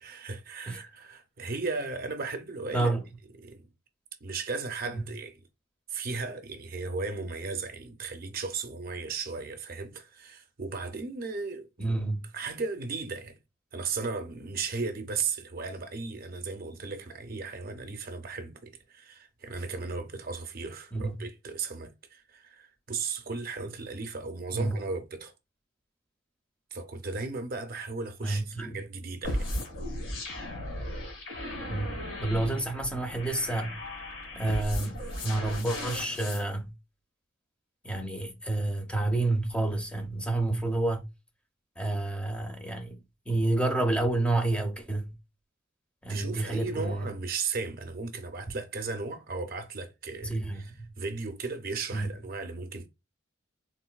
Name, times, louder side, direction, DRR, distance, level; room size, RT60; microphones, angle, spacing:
voice 1, 0.0-2.9 3.4-3.7 4.2-5.4 5.9-12.0 12.3-13.4 13.7-25.3 26.7-29.5 46.1-52.9, right 4 dB, 50° right, 0.5 m, -36 dB
voice 2, 2.7-3.0 4.9-5.1 11.8-12.3 20.9-21.2 24.5-24.8 28.2-28.8 31.7-33.8 34.4-36.7 37.8-41.1 41.8-43.0 43.3-45.1 46.0-47.1 50.2-50.9 51.9-52.2, right 2 dB, 5° left, 0.5 m, -29 dB
sound 1, 29.2-36.4, left 1 dB, 90° left, 1.7 m, -36 dB
3.8 x 2.5 x 2.3 m
head